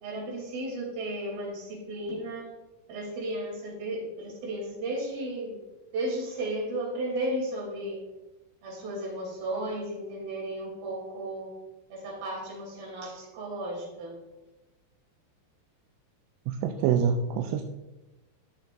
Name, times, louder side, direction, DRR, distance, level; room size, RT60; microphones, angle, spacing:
voice 1, 0.0-2.5 2.9-5.6 5.9-8.0 8.6-11.5 11.9-14.2, right 1 dB, 55° right, -4 dB, 4.6 m, -34 dB
voice 2, 16.5-17.7, right 7 dB, 85° right, 3 dB, 3.0 m, -26 dB
13.5 x 6.4 x 2.6 m, 1.1 s
omnidirectional pair, 5.3 m